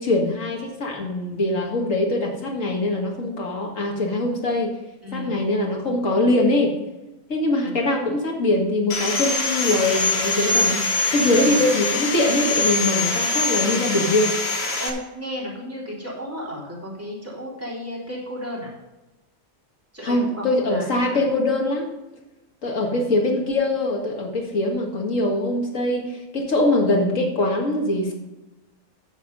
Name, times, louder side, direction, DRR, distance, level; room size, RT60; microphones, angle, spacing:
voice 1, 0.0-4.7 5.1-6.7 7.3-10.8 11.1-14.3 20.0-21.9 22.6-28.1, left 2 dB, 75° left, 1 dB, 2.2 m, -22 dB
voice 2, 5.0-5.4 7.6-7.9 11.1-11.6 14.8-18.7 19.9-21.3 22.8-23.2, equal, 10° right, -5 dB, 3.4 m, -34 dB
Sawing, 8.9-14.9, left 3 dB, 55° left, 1.6 m, -23 dB
10.0 x 6.7 x 5.3 m, 1.0 s
omnidirectional pair, 1.4 m